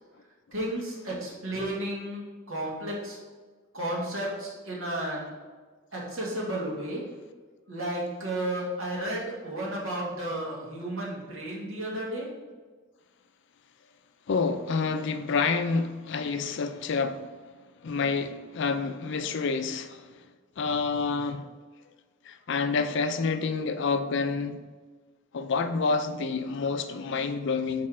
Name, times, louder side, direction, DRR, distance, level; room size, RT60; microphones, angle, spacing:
voice 1, 0.5-3.2 3.7-5.3 5.9-7.1 7.7-12.3, right 1 dB, 85° right, 1.8 m, -33 dB
voice 2, 14.3-17.3 17.8-20.1 20.6-21.5 22.3-24.6 25.3-27.9, left 4 dB, 60° left, 0.4 m, -28 dB
6.5 x 4.2 x 3.7 m
head